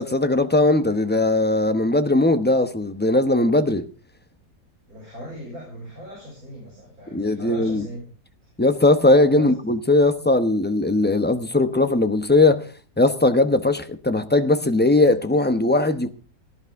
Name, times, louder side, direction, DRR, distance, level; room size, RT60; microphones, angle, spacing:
voice 1, 0.0-3.8 7.1-7.9 8.6-12.6 13.0-16.1, left 2 dB, 10° left, 0.7 m, -19 dB
voice 2, 4.9-8.0 9.3-9.5, equal, 60° right, 6.8 m, -38 dB
18.5 x 11.5 x 3.6 m
omnidirectional pair, 1.8 m